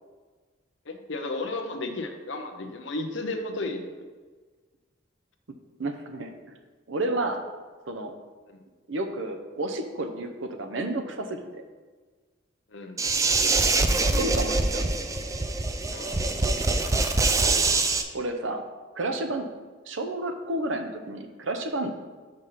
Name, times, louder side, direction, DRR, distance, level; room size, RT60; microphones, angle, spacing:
voice 1, 0.9-3.9 8.5-8.6 12.7-13.0 15.9-16.4, left 2 dB, 65° left, 5 dB, 0.8 m, -34 dB
voice 2, 5.8-6.3 6.9-7.5 7.9-8.1 8.9-11.6 14.1-14.9 18.1-18.6 19.0-19.5 19.9-21.9, right 2 dB, 70° right, 6 dB, 0.8 m, -31 dB
sound 1, 13.0-18.0, right 3 dB, 15° right, 0.4 m, -24 dB
5.6 x 5.3 x 5.6 m, 1.4 s
head